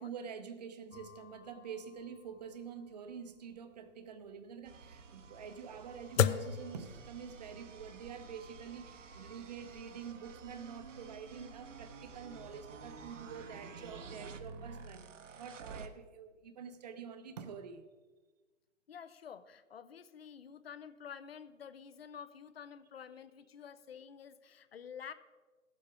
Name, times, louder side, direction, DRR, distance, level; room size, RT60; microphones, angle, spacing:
voice 1, 0.0-17.9, right 7 dB, 35° right, 0.7 m, -47 dB
sound 1, 0.9-7.6, left 9 dB, 85° left, 0.7 m, -38 dB
sound 2, 4.7-15.9, right 5 dB, 75° right, 1.1 m, -51 dB
voice 2, 18.9-25.1, left 7 dB, 50° left, 0.7 m, -50 dB
15.5 x 7.7 x 4.9 m
hypercardioid pair, 165°, 38 cm